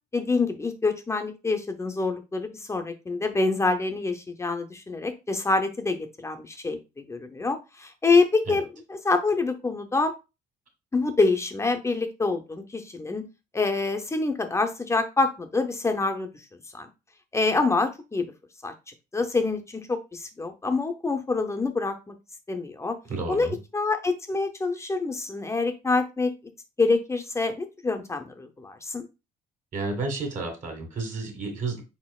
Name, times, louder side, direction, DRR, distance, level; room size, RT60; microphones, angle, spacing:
voice 1, 0.1-10.1 10.9-13.3 13.5-16.3 16.7-16.9 17.3-18.2 18.6-18.7 19.1-22.2 22.5-23.0 23.3-23.5 23.7-26.3 26.8-29.0, left 3 dB, 15° left, 7 dB, 0.6 m, -26 dB
voice 2, 23.0-23.6 29.7-32.0, right 3 dB, 50° right, 3 dB, 1.7 m, -32 dB
4.3 x 4.2 x 2.3 m, 0.27 s
cardioid pair, 110°, 17 cm